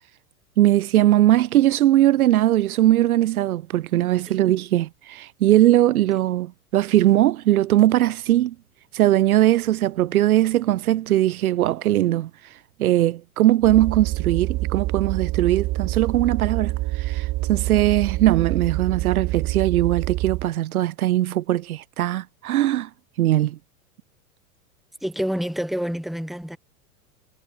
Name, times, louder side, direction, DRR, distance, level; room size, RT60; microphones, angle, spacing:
voice 1, 0.6-8.5 8.9-12.3 12.8-22.9 23.2-23.6, right 14 dB, 65° right, 3.3 m, -20 dB
sound 1, 13.6-20.5, right 18 dB, 35° right, 1.9 m, -26 dB
voice 2, 25.0-26.6, equal, ahead, 3.3 m, -28 dB
hypercardioid pair, 95°, 46 cm